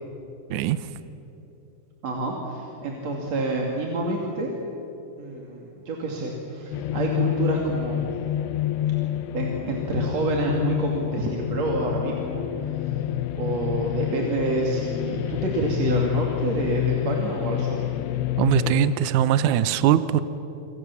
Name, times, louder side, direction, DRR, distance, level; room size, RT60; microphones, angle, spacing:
voice 1, 2.0-4.5 5.2-8.1 9.3-12.5 12.8-12.9 13.3-17.8, right 2 dB, 45° right, -1 dB, 3.2 m, -28 dB
sound 1, 6.7-18.9, left 12 dB, 90° left, 3.0 m, -28 dB
voice 2, 18.4-20.2, right 10 dB, 85° right, 13 dB, 1.8 m, -21 dB
28.5 x 26.0 x 7.2 m, 3.0 s
omnidirectional pair, 4.7 m